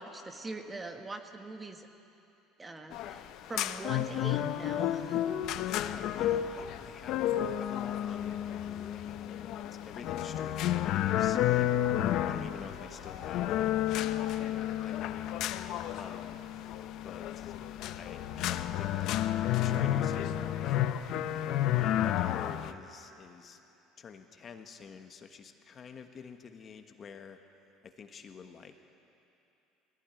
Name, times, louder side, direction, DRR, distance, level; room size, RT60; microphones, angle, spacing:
voice 1, 0.0-1.9 2.6-5.4, right 2 dB, 15° right, 5 dB, 1.5 m, -42 dB
sound 1, 2.9-22.7, left 12 dB, 60° left, 0.7 m, -31 dB
sound 2, 5.4-20.8, left 7 dB, 80° left, 2.2 m, -52 dB
voice 2, 5.7-9.5 9.8-11.7 12.2-15.3 16.0-16.4 17.0-17.5 18.0-21.0 21.7-23.6 24.0-27.4 27.8-28.7, left 6 dB, 35° left, 6 dB, 1.3 m, -48 dB
20.5 x 16.5 x 9.1 m, 2.8 s
supercardioid pair, 120°, 0 cm